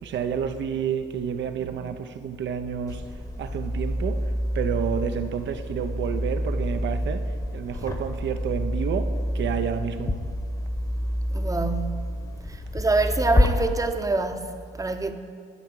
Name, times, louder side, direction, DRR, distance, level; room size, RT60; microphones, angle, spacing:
voice 1, 0.0-3.0 3.4-10.2, right 7 dB, 65° right, 0.7 m, -30 dB
sound 1, 2.9-13.5, equal, 20° left, 1.1 m, -28 dB
voice 2, 11.3-12.1 12.5-15.1, right 3 dB, 15° right, 0.8 m, -26 dB
11.0 x 4.7 x 7.6 m
cardioid pair, 90°, 20 cm